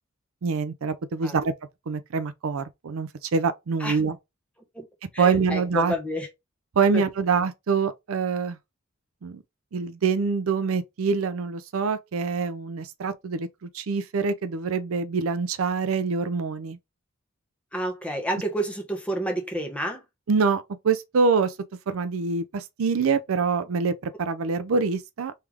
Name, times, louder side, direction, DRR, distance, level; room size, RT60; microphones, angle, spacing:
voice 1, 0.4-1.5 1.9-4.2 5.2-5.9 6.8-8.6 9.2-9.4 9.7-16.8 20.3-21.5 21.9-25.3, right 5 dB, 75° right, 0.5 m, -25 dB
voice 2, 5.1-6.3 6.9-7.0 17.7-20.0, right 1 dB, 5° left, 1.1 m, -29 dB
3.4 x 3.2 x 3.5 m
head